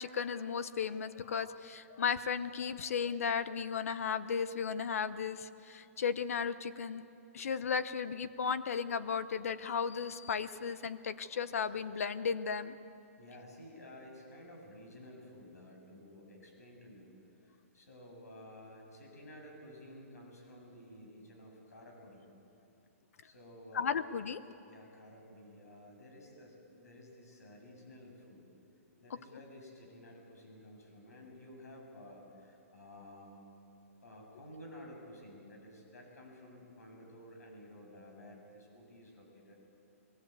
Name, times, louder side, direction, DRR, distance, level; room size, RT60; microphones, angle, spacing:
voice 1, 0.0-7.0 7.3-12.8 23.7-24.4, left 6 dB, 65° left, 14 dB, 0.9 m, -35 dB
voice 2, 13.2-17.1 17.4-22.3 23.2-24.1 24.6-28.5 29.0-33.4 34.0-39.6, left 1 dB, 85° left, 1 dB, 7.3 m, -53 dB
22.0 x 17.0 x 8.4 m, 2.7 s
hypercardioid pair, 165°, 8 cm